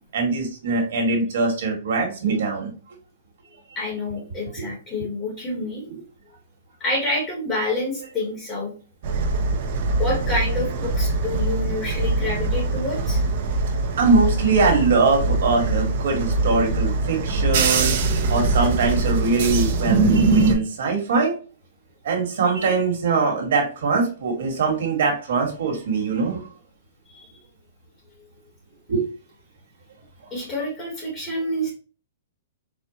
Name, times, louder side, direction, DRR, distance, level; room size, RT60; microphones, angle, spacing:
voice 1, 0.1-2.7 4.6-4.7 5.8-6.0 14.0-17.9 18.3-21.3 22.0-26.5 28.9-29.1, right 4 dB, 65° right, 2 dB, 1.3 m, -22 dB
voice 2, 3.8-5.8 6.8-8.7 10.0-13.2 27.1-27.3 30.3-31.7, left 1 dB, 15° left, -4 dB, 1.1 m, -28 dB
sound 1, 9.0-20.5, right 3 dB, 45° right, 0.5 m, -22 dB
4.3 x 2.1 x 2.8 m, 0.37 s
hypercardioid pair, 170°, 0 cm